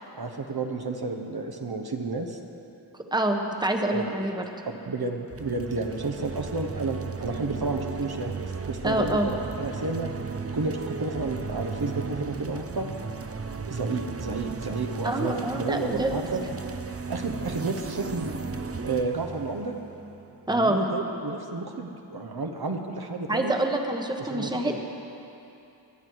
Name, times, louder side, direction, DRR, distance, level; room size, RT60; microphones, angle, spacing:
voice 1, 0.1-2.4 3.9-4.1 4.8-10.1 10.5-12.9 13.6-16.4 17.1-18.4 18.8-19.7 20.5-23.5 24.2-24.8, right 3 dB, 60° right, 3 dB, 1.2 m, -31 dB
voice 2, 3.1-4.4 8.8-9.3 15.0-16.2 20.5-20.8 23.3-24.8, right 1 dB, 10° right, 3 dB, 1.2 m, -26 dB
sound 1, 5.3-20.7, right 5 dB, 35° right, 0.6 m, -35 dB
24.0 x 9.8 x 4.7 m, 2.9 s
wide cardioid pair, 65°, 44 cm